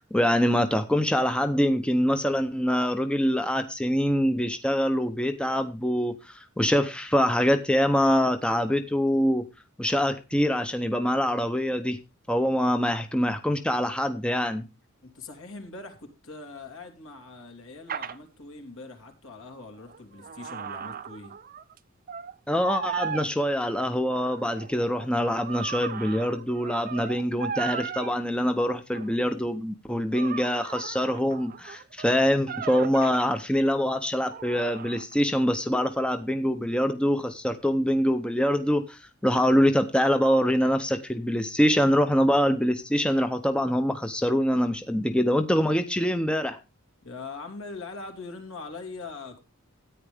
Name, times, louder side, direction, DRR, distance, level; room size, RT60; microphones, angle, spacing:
voice 1, 0.1-9.4 9.8-12.0 12.3-14.6 22.5-46.6, equal, 5° left, 0.7 m, -24 dB
voice 2, 15.0-21.3 47.0-49.4, left 3 dB, 65° left, 3.1 m, -42 dB
sound 1, 17.9-18.2 19.7-21.8 22.1-22.3 22.6-23.3 24.1-28.2 28.9-29.1 30.1-33.2 34.3-35.2, right 7 dB, 40° right, 0.6 m, -37 dB
13.5 x 9.5 x 3.5 m
head